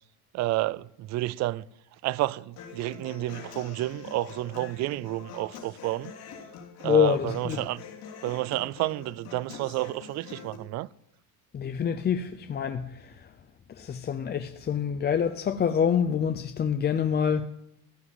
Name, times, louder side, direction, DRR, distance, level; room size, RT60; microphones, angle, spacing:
voice 1, 0.3-1.6 2.0-6.1 6.8-7.8 8.2-10.9, right 17 dB, 40° right, 0.4 m, -30 dB
Human voice / Acoustic guitar, 2.6-10.5, left 6 dB, 55° left, 3.1 m, -45 dB
voice 2, 6.8-7.7 11.5-13.4 13.7-17.5, left 8 dB, 25° left, 0.6 m, -26 dB
15.0 x 6.0 x 9.5 m
supercardioid pair, 115°, 44 cm